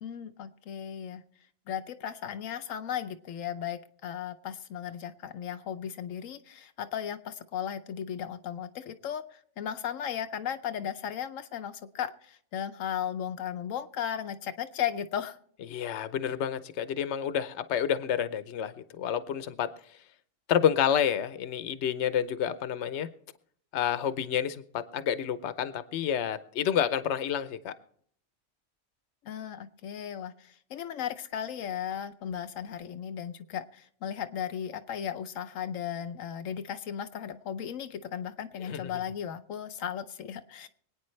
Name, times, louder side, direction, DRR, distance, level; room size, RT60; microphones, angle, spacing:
voice 1, 0.0-1.2 1.7-15.4 29.2-40.7, left 9 dB, 85° left, 8 dB, 1.1 m, -36 dB
voice 2, 15.7-19.7 20.5-23.1 23.7-24.6 24.9-27.7 38.6-38.9, left 9 dB, 65° left, 12 dB, 1.0 m, -29 dB
25.0 x 9.2 x 3.2 m, 0.63 s
omnidirectional pair, 1.4 m